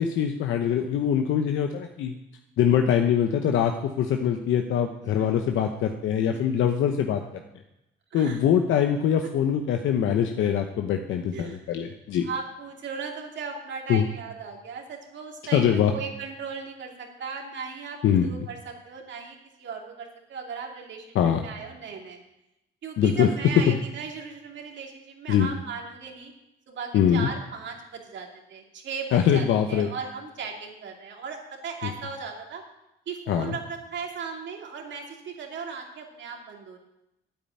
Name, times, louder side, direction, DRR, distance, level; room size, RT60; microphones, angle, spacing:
voice 1, 0.0-2.1 2.6-7.2 8.1-12.3 13.9-14.0 15.5-15.9 18.0-18.3 21.1-21.4 23.0-23.3 23.7-23.8 25.3-25.5 26.9-27.3 29.1-29.9 33.3-33.5, left 9 dB, 80° left, 5 dB, 0.9 m, -23 dB
voice 2, 8.1-8.5 9.2-9.3 11.3-11.6 12.2-22.2 22.8-26.3 26.7-32.6 33.1-36.8, right 5 dB, 65° right, 1 dB, 2.7 m, -37 dB
9.2 x 8.6 x 8.8 m, 0.89 s
cardioid pair, 90°, 20 cm